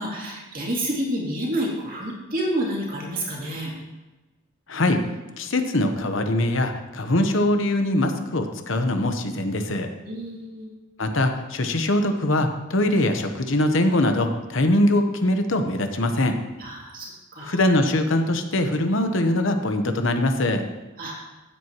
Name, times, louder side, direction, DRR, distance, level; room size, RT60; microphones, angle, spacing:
voice 1, 0.0-3.7 10.0-10.7 16.6-17.6 21.0-21.2, right 1 dB, 45° right, -3 dB, 2.6 m, -29 dB
voice 2, 4.7-5.0 5.4-9.9 11.0-16.3 17.4-20.6, left 1 dB, 65° left, 6 dB, 1.0 m, -22 dB
15.0 x 7.8 x 3.0 m, 1.1 s
head